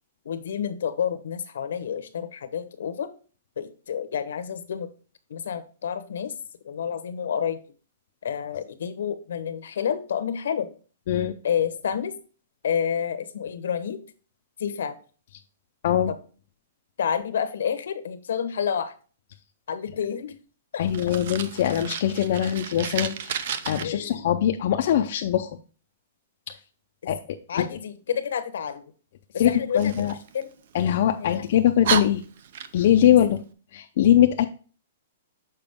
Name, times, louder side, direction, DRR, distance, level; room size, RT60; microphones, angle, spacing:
voice 1, 0.2-3.1 3.6-4.9 5.3-6.3 6.6-7.6 8.2-10.7 11.4-12.1 12.6-14.0 14.6-15.0 16.1-16.2 17.0-18.9 19.7-20.3 20.7-21.1 23.8-24.2 27.5-28.8 29.3-30.1 30.3-30.5 31.2-31.4, left 8 dB, 75° left, 11 dB, 0.9 m, -29 dB
voice 2, 11.1-11.4 15.8-16.1 20.8-25.6 26.5-26.6 27.1-27.2 27.6-27.7 29.4-30.1 30.7-32.2 32.7-33.4 33.7-34.5, left 11 dB, 45° left, 4 dB, 0.5 m, -22 dB
Fire, 20.9-23.8 29.8-31.0 31.5-31.6 31.8-33.0, right 8 dB, 50° right, 0.5 m, -32 dB
6.8 x 4.8 x 3.5 m, 0.38 s
hypercardioid pair, 170°, 0 cm